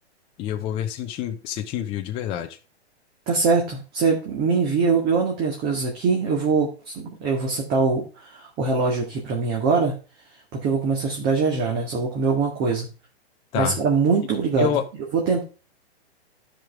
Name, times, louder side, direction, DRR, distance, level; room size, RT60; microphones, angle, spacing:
voice 1, 0.4-2.6 13.5-13.8 14.6-14.8, left 10 dB, 15° left, 5 dB, 0.5 m, -27 dB
voice 2, 3.3-9.9 10.5-12.9 13.5-14.7 15.1-15.4, right 4 dB, 30° right, -1 dB, 1.9 m, -23 dB
12.0 x 5.2 x 3.3 m, 0.34 s
hypercardioid pair, 140°, 32 cm